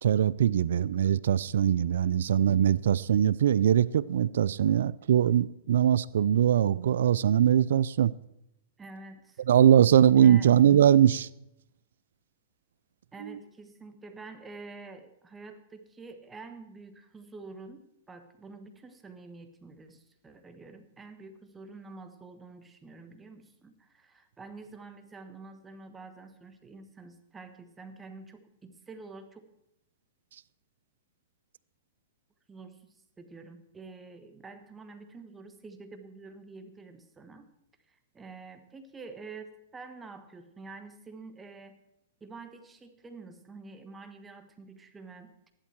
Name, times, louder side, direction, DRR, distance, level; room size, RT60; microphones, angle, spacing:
voice 1, 0.0-8.1 9.5-11.3 13.2-13.4, right 10 dB, 75° right, 0.4 m, -22 dB
voice 2, 8.8-9.4 10.2-10.5 13.1-29.4 32.5-37.5 37.9-41.8 42.2-45.3, right 3 dB, 15° right, 1.4 m, -48 dB
14.0 x 11.5 x 4.5 m
hypercardioid pair, 125°, 0 cm